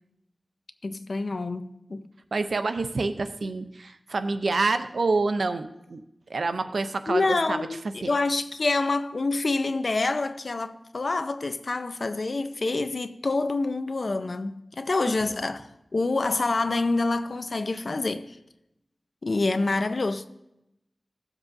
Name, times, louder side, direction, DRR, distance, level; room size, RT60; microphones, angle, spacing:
voice 1, 0.8-2.1 7.1-18.4 19.2-20.3, left 3 dB, 65° left, 0.5 m, -27 dB
voice 2, 2.3-6.0 6.3-7.7 8.0-8.1 15.1-15.2, right 3 dB, 90° right, 0.5 m, -27 dB
16.5 x 7.3 x 2.6 m
wide cardioid pair, 75°, 0 cm